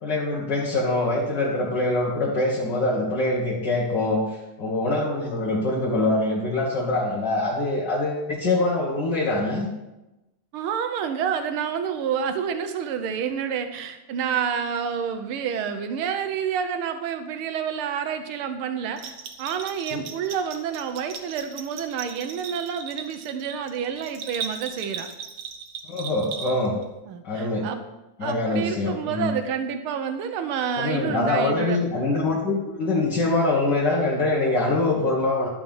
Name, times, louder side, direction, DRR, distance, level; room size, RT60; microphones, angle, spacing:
voice 1, 0.0-9.7 19.9-20.0 25.9-26.7 27.2-27.7 28.2-29.3 30.8-35.5, left 2 dB, 40° left, -4 dB, 2.1 m, -24 dB
voice 2, 10.5-25.1 27.1-27.8 28.2-31.8, right 7 dB, 85° right, 8 dB, 1.1 m, -29 dB
Bell, 19.0-26.8, right 6 dB, 55° right, 1.7 m, -37 dB
12.0 x 5.7 x 7.3 m, 1.0 s
omnidirectional pair, 3.3 m